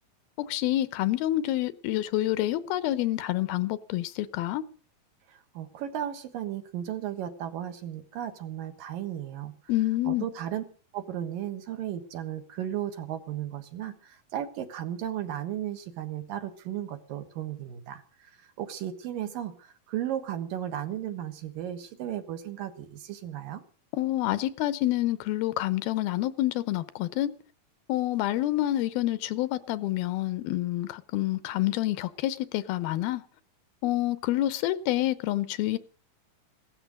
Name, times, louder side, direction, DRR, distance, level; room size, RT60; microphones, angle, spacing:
voice 1, 0.4-4.6 9.7-10.3 23.9-27.3 27.9-33.2 33.8-35.8, left 15 dB, 85° left, 2.8 m, -28 dB
voice 2, 5.3-9.5 10.0-10.6 10.9-18.3 18.6-23.6, right 11 dB, 70° right, 3.0 m, -35 dB
17.0 x 13.0 x 6.4 m
omnidirectional pair, 4.2 m